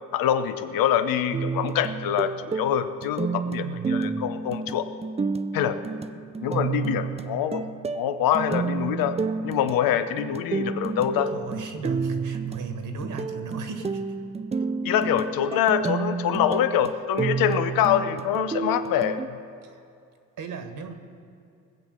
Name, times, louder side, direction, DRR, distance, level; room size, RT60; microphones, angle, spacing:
voice 1, 0.1-4.9 5.5-5.8 6.4-7.7 7.9-9.2 9.4-11.3 14.8-19.4, left 10 dB, 75° left, 10 dB, 0.9 m, -25 dB
sound 1, 1.3-19.3, right 5 dB, 20° right, 0.5 m, -30 dB
voice 2, 3.6-4.1 11.3-14.0 19.6-19.8 20.4-20.9, right 3 dB, 60° right, 7 dB, 1.7 m, -37 dB
19.5 x 7.8 x 6.5 m, 2.5 s
supercardioid pair, 75°, 34 cm